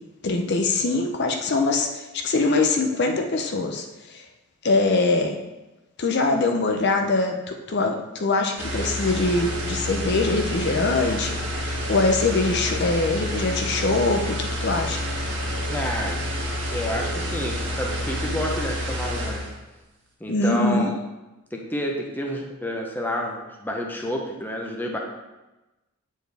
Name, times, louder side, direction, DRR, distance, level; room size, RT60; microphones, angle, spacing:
voice 1, 0.2-4.2 4.6-5.4 6.0-15.0 20.3-20.9, left 3 dB, 50° left, 3 dB, 0.6 m, -23 dB
sound 1, 8.6-19.6, equal, 55° right, 1.5 m, -29 dB
voice 2, 15.7-16.2 16.7-19.5 20.2-20.9 21.5-25.0, equal, 10° left, 0 dB, 0.7 m, -29 dB
8.0 x 4.5 x 3.4 m, 1.0 s
head